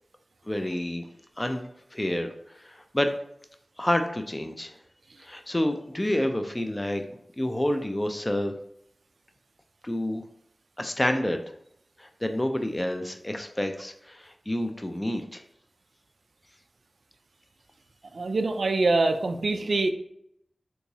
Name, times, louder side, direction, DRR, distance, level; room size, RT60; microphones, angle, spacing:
voice 1, 0.5-1.1 1.4-2.3 2.6-3.1 3.8-4.8 5.2-7.0 7.4-8.5 9.8-10.2 10.8-11.4 12.0-15.4, left 1 dB, 20° left, 6 dB, 0.3 m, -28 dB
voice 2, 18.1-19.9, right 3 dB, 75° right, 7 dB, 0.3 m, -24 dB
3.5 x 2.9 x 2.7 m, 0.72 s
wide cardioid pair, 60°, 0 cm